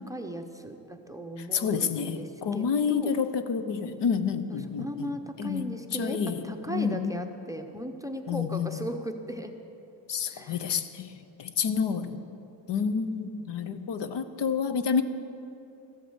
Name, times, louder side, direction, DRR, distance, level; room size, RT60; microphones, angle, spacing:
voice 1, 0.1-3.1 4.5-9.5 10.3-10.7 11.8-12.0 12.8-13.3, equal, 10° right, 6 dB, 0.6 m, -37 dB
voice 2, 1.5-5.1 5.4-7.2 8.3-8.8 10.1-11.1 11.4-12.2 12.7-15.0, left 6 dB, 70° left, 11 dB, 0.8 m, -29 dB
14.5 x 8.5 x 7.9 m, 2.8 s
wide cardioid pair, 155°, 45 cm